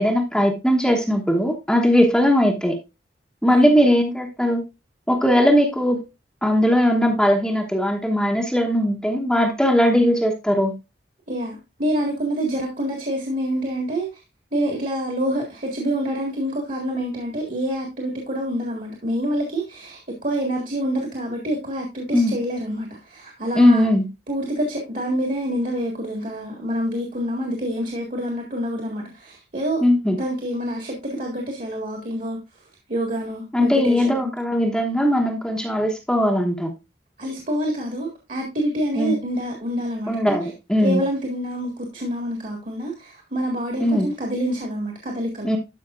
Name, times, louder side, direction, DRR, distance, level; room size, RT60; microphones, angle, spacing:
voice 1, 0.0-2.8 3.4-4.6 5.1-6.0 6.4-10.7 22.1-22.4 23.6-24.1 29.8-30.2 33.5-36.7 38.9-39.2 40.1-41.0 43.8-44.1 45.4-45.6, equal, 5° left, 1.0 m, -19 dB
voice 2, 11.3-14.1 14.5-23.9 24.3-29.8 30.1-32.4 32.9-34.3 37.2-40.4 40.8-45.5, equal, 45° right, 1.8 m, -27 dB
12.0 x 5.6 x 2.5 m
head